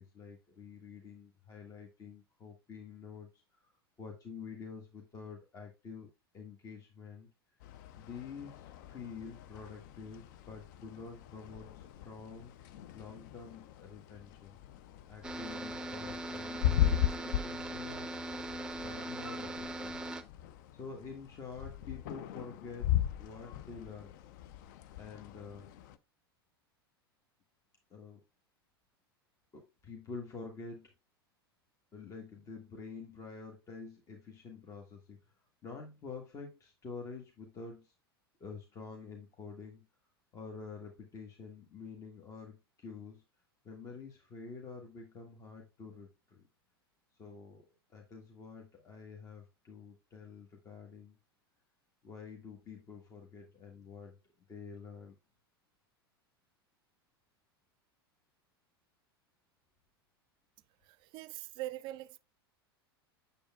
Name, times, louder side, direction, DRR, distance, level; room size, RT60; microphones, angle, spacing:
voice 1, 0.0-3.6 4.0-6.1 6.3-7.3 7.9-12.5 12.9-14.6 15.1-18.2 18.8-19.9 20.7-24.1 25.0-25.7 27.9-28.2 29.5-30.9 31.9-35.2 35.6-37.9 38.4-39.9 40.3-43.2 43.6-46.5 47.2-51.2 52.0-54.2 54.5-55.1, left 5 dB, 25° left, 1.4 m, -48 dB
sound 1, 7.6-26.0, left 11 dB, 50° left, 0.6 m, -38 dB
sound 2, 15.2-20.2, right 1 dB, 5° right, 0.7 m, -40 dB
voice 2, 60.8-62.2, right 15 dB, 40° right, 0.5 m, -42 dB
8.5 x 6.9 x 2.3 m
figure-of-eight pair, 90°, 13 cm